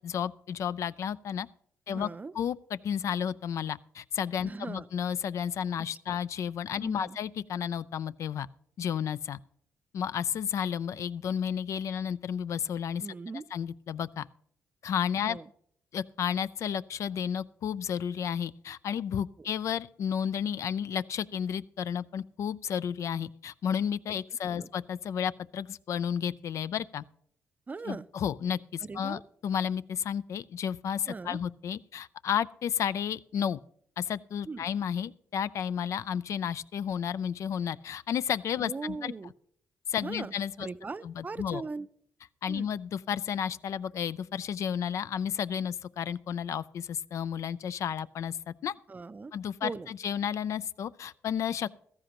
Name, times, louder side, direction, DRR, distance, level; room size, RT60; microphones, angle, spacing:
voice 1, 0.0-1.5 1.9-2.1 2.3-8.5 8.8-9.4 9.9-13.0 13.5-14.3 14.8-15.4 15.9-27.0 27.9-33.6 34.0-39.1 39.9-40.7 41.0-41.6 42.4-48.7 49.3-51.7, left 8 dB, 65° left, 0.3 m, -32 dB
voice 2, 1.9-2.3 4.4-4.9 6.1-6.2 6.8-7.2 13.0-13.5 15.2-15.5 19.4-19.5 24.1-24.2 24.5-24.7 27.7-28.1 28.8-29.2 31.1-31.4 34.5-34.7 38.6-39.3 40.0-41.9 42.5-42.7 48.9-49.3 49.6-49.9, right 4 dB, 30° right, 0.4 m, -39 dB
15.5 x 13.0 x 2.9 m
cardioid pair, 70°, 6 cm